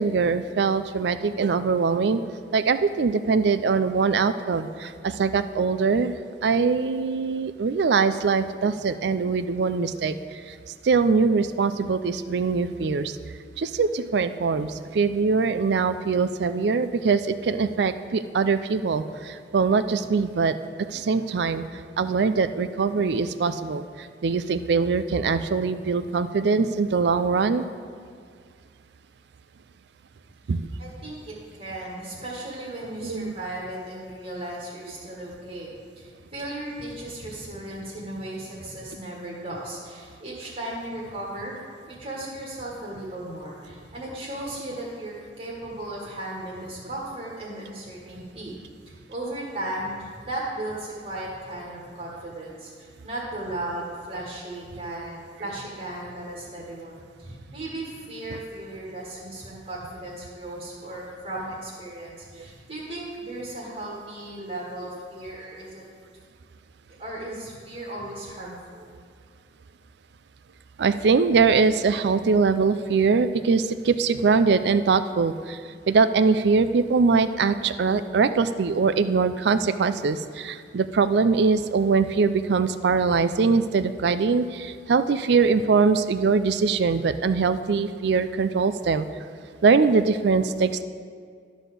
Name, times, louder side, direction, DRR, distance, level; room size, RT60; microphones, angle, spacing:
voice 1, 0.0-2.2 2.5-6.1 6.4-10.6 10.8-13.2 13.6-20.6 20.9-21.6 22.0-27.7 30.5-30.7 33.0-33.3 58.3-58.4 70.8-75.6 75.9-89.0 89.6-90.8, right 4 dB, 70° right, 12 dB, 0.4 m, -22 dB
voice 2, 30.8-41.5 41.9-48.6 48.9-65.8 67.0-68.9, right 1 dB, 40° right, -4 dB, 1.7 m, -36 dB
12.0 x 4.1 x 6.7 m, 2.1 s
head